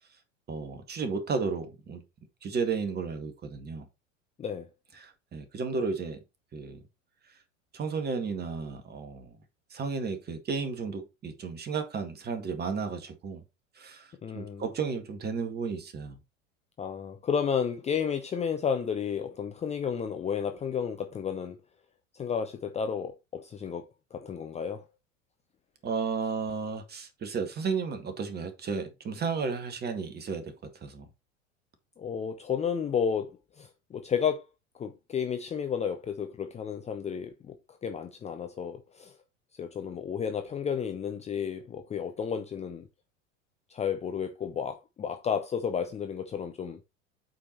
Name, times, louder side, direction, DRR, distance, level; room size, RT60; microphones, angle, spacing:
voice 1, 0.5-2.0 2.4-3.9 5.0-6.2 6.5-6.8 7.7-9.3 9.7-13.4 13.8-14.1 14.3-16.2 25.8-30.5 30.8-31.1, right 5 dB, 25° right, 2.0 m, -33 dB
voice 2, 14.2-14.7 16.8-21.6 22.1-23.8 24.1-24.8 32.0-34.4 34.7-39.2 39.6-42.8 43.7-46.8, left 7 dB, 15° left, 0.7 m, -32 dB
8.3 x 5.0 x 4.2 m
figure-of-eight pair, 80°, 38 cm